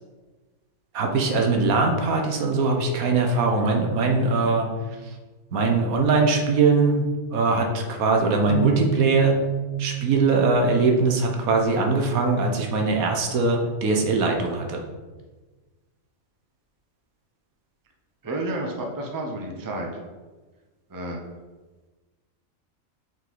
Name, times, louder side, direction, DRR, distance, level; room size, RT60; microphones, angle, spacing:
voice 1, 0.9-4.7 5.5-7.0 7.3-9.3 9.8-14.8, right 3 dB, 85° right, 2 dB, 1.3 m, -21 dB
sound 1, 8.5-14.7, right 11 dB, 60° right, 1.0 m, -32 dB
voice 2, 18.2-19.9 20.9-21.2, right 2 dB, 20° right, 0 dB, 0.6 m, -30 dB
6.0 x 3.9 x 4.6 m, 1.3 s
omnidirectional pair, 1.5 m